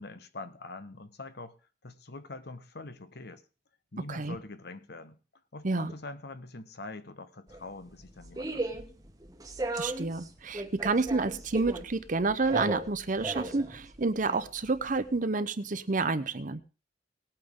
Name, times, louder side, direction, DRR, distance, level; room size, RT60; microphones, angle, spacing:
voice 1, 0.0-1.5 1.8-3.4 3.9-5.2 5.5-8.8, left 2 dB, 60° left, 11 dB, 1.1 m, -44 dB
sound 1, 7.5-15.2, right 2 dB, 20° right, 1.2 m, -37 dB
voice 2, 9.7-16.6, right 3 dB, 45° right, 12 dB, 0.8 m, -29 dB
19.0 x 8.8 x 3.7 m, 0.35 s
head